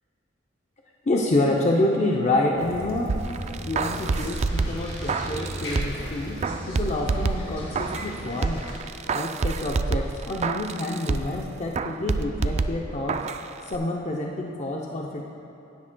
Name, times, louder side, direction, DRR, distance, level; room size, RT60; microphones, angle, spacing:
voice 1, 1.1-3.1 3.6-8.7 9.1-13.2 13.6-15.2, left 2 dB, 35° left, -1 dB, 0.6 m, -27 dB
Waves surf / Splash splatter / Trickle dribble, 2.6-8.4, equal, 85° right, 2.4 m, -37 dB
sound 1, 3.1-6.1 6.4-8.1 8.4-11.4 11.7-13.4 13.7-13.8, right 4 dB, 35° right, 0.3 m, -28 dB
sound 2, 3.7-8.8, left 1 dB, 85° left, 2.3 m, -40 dB
15.5 x 9.9 x 2.2 m, 2.8 s
head